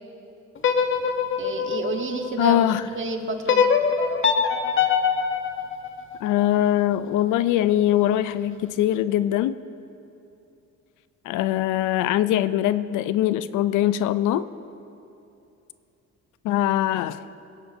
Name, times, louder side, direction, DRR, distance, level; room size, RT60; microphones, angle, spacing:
sound 1, 0.6-2.7 3.5-6.6, left 6 dB, 40° left, 0.9 m, -23 dB
voice 1, 1.4-2.6 3.0-3.7, right 3 dB, 40° right, 4 dB, 1.3 m, -29 dB
voice 2, 2.4-2.9 6.2-9.6 11.2-14.5 16.4-17.3, left 12 dB, 85° left, 14 dB, 0.5 m, -22 dB
22.5 x 10.0 x 2.7 m, 2.8 s
cardioid pair, 90°, 30 cm